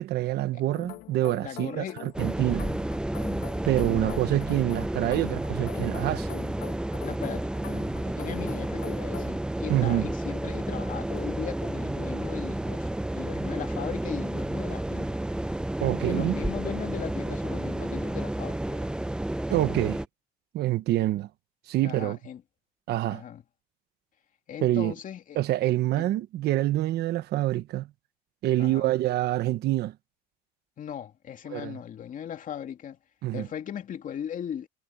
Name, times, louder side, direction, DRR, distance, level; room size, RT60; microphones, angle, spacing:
voice 1, 0.0-2.7 3.7-6.3 9.7-10.1 15.8-16.3 19.5-20.0 20.5-21.3 21.7-22.2 22.9-23.2 24.6-24.9 25.3-27.9 28.4-29.9 31.5-31.8 33.2-33.5, right 15 dB, 75° right, 1.1 m, -26 dB
sound 1, 0.7-9.4, left 15 dB, 85° left, 2.0 m, -43 dB
voice 2, 1.4-2.0 3.8-4.4 7.0-15.2 16.0-18.9 21.8-22.4 23.1-23.4 24.5-25.4 26.0-26.1 28.6-28.9 30.8-33.0 33.3-34.7, left 9 dB, 50° left, 2.5 m, -38 dB
sound 2, 2.1-20.1, right 1 dB, 5° right, 0.6 m, -31 dB
cardioid pair, 110°, 17 cm